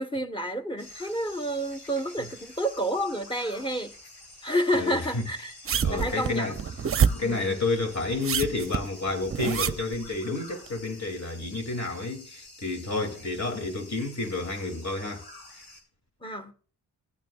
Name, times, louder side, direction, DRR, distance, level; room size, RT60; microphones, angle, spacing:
voice 1, 0.0-3.9 4.4-5.5 5.9-6.5 7.2-7.5 16.2-16.5, equal, 15° left, 1.3 m, -29 dB
sound 1, 0.8-15.8, left 2 dB, 70° left, 4.2 m, -48 dB
voice 2, 4.7-5.3 5.8-6.6 7.1-15.3, left 3 dB, 45° left, 2.9 m, -30 dB
sound 2, 5.7-7.3 8.1-10.0 10.7-10.8, right 7 dB, 35° right, 0.6 m, -26 dB
16.0 x 9.2 x 2.4 m
supercardioid pair, 55°, 39 cm